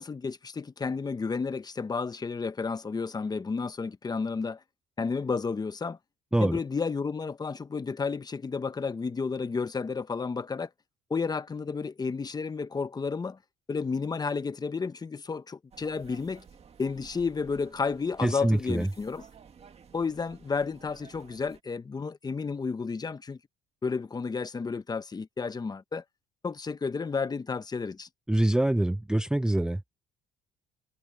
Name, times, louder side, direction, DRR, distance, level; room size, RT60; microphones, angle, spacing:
voice 1, 0.0-4.6 5.0-6.0 6.4-10.7 11.1-13.4 13.7-16.4 16.8-19.2 19.9-23.4 23.8-26.0 26.4-28.1, left 4 dB, 25° left, 1.0 m, -32 dB
sound 1, 15.7-21.6, right 6 dB, 40° right, 2.1 m, -54 dB
voice 2, 18.2-18.9 28.3-29.8, right 1 dB, 5° right, 0.5 m, -25 dB
cardioid pair, 110°, 17 cm